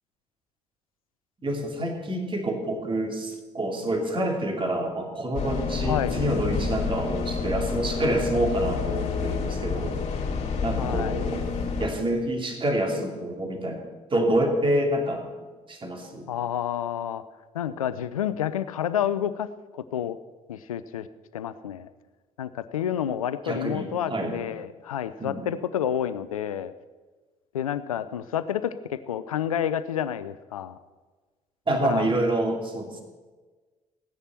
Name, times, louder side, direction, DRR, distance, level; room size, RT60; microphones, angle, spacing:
voice 1, 1.4-10.0 10.6-11.4 11.8-15.3 15.7-16.3 23.4-24.4 25.2-25.5 31.7-33.0, right 1 dB, 30° right, 2 dB, 2.7 m, -27 dB
sound 1, 5.3-11.9, left 5 dB, 40° left, 2.8 m, -29 dB
voice 2, 5.8-6.2 10.8-11.2 16.3-17.2 17.5-19.5 19.7-20.2 20.5-21.1 21.3-21.9 22.4-26.7 27.5-30.8 31.8-32.1, left 10 dB, 85° left, 14 dB, 0.5 m, -29 dB
15.5 x 9.8 x 4.4 m, 1.3 s
figure-of-eight pair, 50°, 18 cm